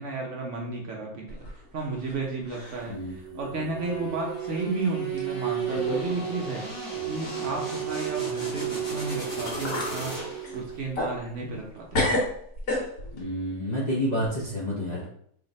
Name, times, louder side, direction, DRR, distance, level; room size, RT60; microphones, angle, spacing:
voice 1, 0.0-1.4 1.7-12.1, right 3 dB, 60° right, -1 dB, 0.9 m, -33 dB
sound 1, 1.3-2.2 2.5-2.9 3.4-3.5 4.3-4.5 5.2-5.3 5.7-6.1 6.4-6.5 9.0-9.1 9.5-10.0 10.4-11.7 11.9-13.2, left 1 dB, 75° left, 1.7 m, -30 dB
voice 2, 2.9-4.0 13.1-15.1, equal, 40° left, -6 dB, 0.6 m, -30 dB
sound 2, 3.0-10.8, right 10 dB, 30° right, 0.4 m, -34 dB
sound 3, 3.8-10.6, equal, 20° left, 1.7 m, -38 dB
3.3 x 2.5 x 4.0 m, 0.66 s
omnidirectional pair, 1.6 m